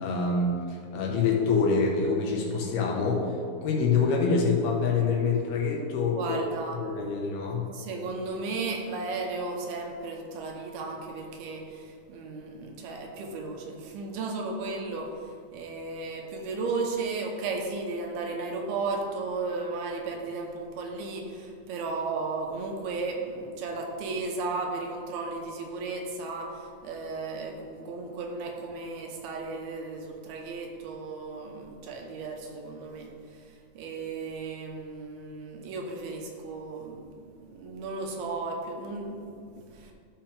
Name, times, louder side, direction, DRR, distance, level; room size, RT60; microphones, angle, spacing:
voice 1, 0.0-3.3 3.6-6.4 6.8-7.7, left 4 dB, 80° left, -1 dB, 3.1 m, -26 dB
voice 2, 6.2-6.8 7.7-33.4 33.7-39.9, right 3 dB, 90° right, 1 dB, 2.9 m, -35 dB
13.5 x 5.8 x 3.5 m, 2.3 s
omnidirectional pair, 4.4 m